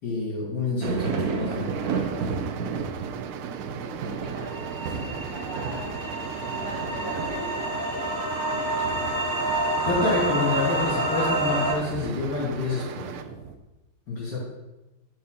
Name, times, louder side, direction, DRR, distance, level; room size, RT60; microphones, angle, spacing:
voice 1, 0.0-1.8 9.8-13.1 14.1-14.4, left 2 dB, 55° left, -10 dB, 3.9 m, -28 dB
sound 1, 0.8-13.5, right 5 dB, 60° right, 1.1 m, -34 dB
sound 2, 1.5-13.2, right 10 dB, 80° right, 1.5 m, -39 dB
voice 2, 3.8-5.9 6.6-7.8, right 1 dB, 15° left, -5 dB, 1.5 m, -40 dB
sound 3, 4.5-11.7, right 1 dB, 10° right, 1.9 m, -28 dB
11.0 x 4.5 x 5.4 m, 1.0 s
omnidirectional pair, 2.3 m